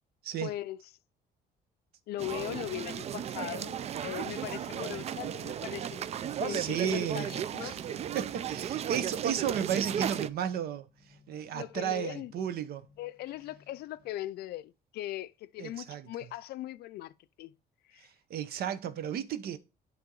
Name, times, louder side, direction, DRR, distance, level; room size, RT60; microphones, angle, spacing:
voice 1, 0.4-0.8 2.1-6.0 6.4-7.8 11.5-12.5 13.0-17.1 17.4-17.5 17.9-18.1, left 15 dB, 70° left, 0.4 m, -39 dB
sound 1, 2.2-10.3, right 9 dB, 40° right, 0.4 m, -35 dB
voice 2, 6.5-7.8 8.1-10.9 11.3-12.8 15.6-16.1 18.0-19.6, right 9 dB, 65° right, 0.8 m, -33 dB
sound 2, 7.7-14.1, left 1 dB, 10° right, 2.8 m, -60 dB
9.6 x 3.5 x 3.8 m
cardioid pair, 110°, 17 cm